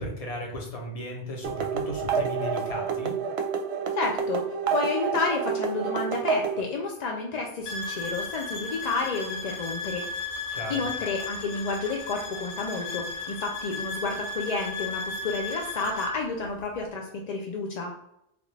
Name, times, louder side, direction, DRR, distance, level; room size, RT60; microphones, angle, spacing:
voice 1, 0.0-3.1 10.5-10.8, left 1 dB, 35° left, -1 dB, 0.8 m, -35 dB
sound 1, 1.4-6.6, right 6 dB, 70° right, 0.8 m, -28 dB
voice 2, 3.9-4.5 4.7-10.1 10.7-17.9, left 4 dB, 60° left, 1 dB, 0.4 m, -30 dB
sound 2, 7.7-16.2, left 3 dB, 75° left, 0.9 m, -35 dB
3.5 x 2.4 x 3.1 m, 0.80 s
omnidirectional pair, 1.2 m